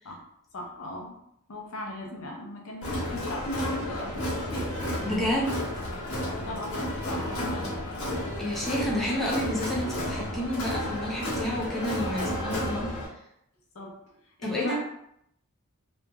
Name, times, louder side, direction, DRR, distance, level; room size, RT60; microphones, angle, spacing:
voice 1, 0.5-1.2 1.5-4.7 6.4-7.8 9.8-10.2 12.1-12.9 13.7-13.9 14.2-14.8, left 1 dB, 70° left, 0 dB, 0.7 m, -38 dB
Crowd, 2.8-13.1, left 1 dB, 90° left, 1.1 m, -32 dB
voice 2, 5.0-5.7 8.4-12.9 14.4-14.8, left 1 dB, ahead, -6 dB, 0.6 m, -30 dB
3.0 x 2.5 x 2.2 m, 0.74 s
head